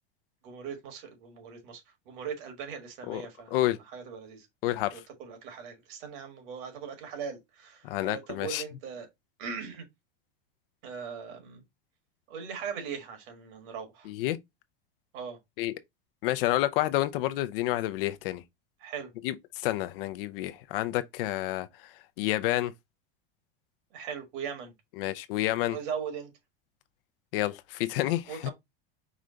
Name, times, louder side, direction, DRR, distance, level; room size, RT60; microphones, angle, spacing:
voice 1, 0.4-3.6 3.9-4.5 4.9-9.1 9.4-9.8 10.8-11.6 12.3-14.1 15.1-15.4 18.8-19.1 23.9-24.7 25.7-26.3 28.3-28.5, right 6 dB, 60° right, 1.6 m, -39 dB
voice 2, 4.6-5.0 7.8-8.6 14.1-14.4 15.6-15.8 16.2-18.4 19.2-22.7 25.0-25.8 27.3-28.5, left 15 dB, 70° left, 0.5 m, -29 dB
4.9 x 2.2 x 3.7 m
supercardioid pair, 155°, 30 cm